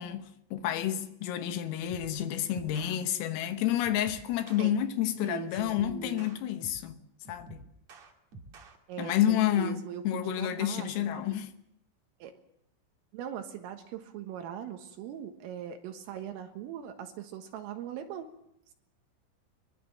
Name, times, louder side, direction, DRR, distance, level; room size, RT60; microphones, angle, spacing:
voice 1, 0.0-7.0 7.3-7.6 9.0-11.5, left 11 dB, 80° left, 3.8 m, -30 dB
sound 1, 1.9-2.2 2.5-3.0 3.8-4.7 5.5-6.9 7.2-8.8, right 3 dB, 45° right, 2.6 m, -50 dB
voice 2, 5.2-6.3 8.9-11.2 12.2-12.4 13.1-18.3, right 9 dB, 80° right, 4.0 m, -40 dB
23.0 x 22.5 x 7.6 m
omnidirectional pair, 6.0 m